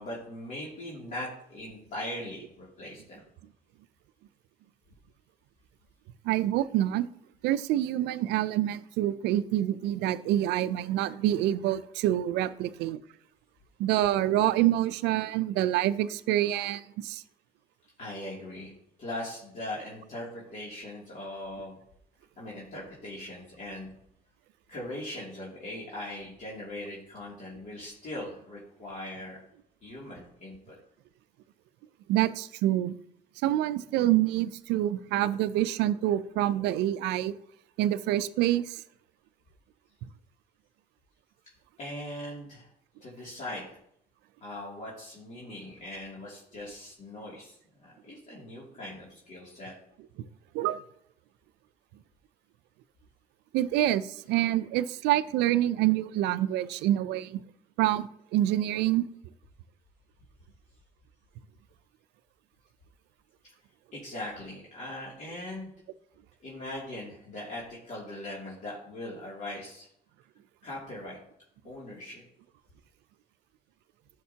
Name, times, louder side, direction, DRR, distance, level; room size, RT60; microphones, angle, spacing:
voice 1, 0.0-3.3 18.0-18.7 19.0-21.8 22.4-23.9 24.7-29.4 29.8-30.8 41.8-42.7 43.0-43.8 44.4-49.7 63.9-65.7 66.4-69.9 70.6-71.2 71.6-72.2, left 1 dB, 45° left, -6 dB, 2.7 m, -40 dB
voice 2, 6.2-7.1 7.4-13.0 13.8-17.2 32.1-32.9 33.4-37.3 37.8-38.8 50.5-50.8 53.5-57.4 57.8-59.0, right 13 dB, 85° right, 14 dB, 0.5 m, -26 dB
11.0 x 6.5 x 2.8 m, 0.71 s
cardioid pair, 110°, 17 cm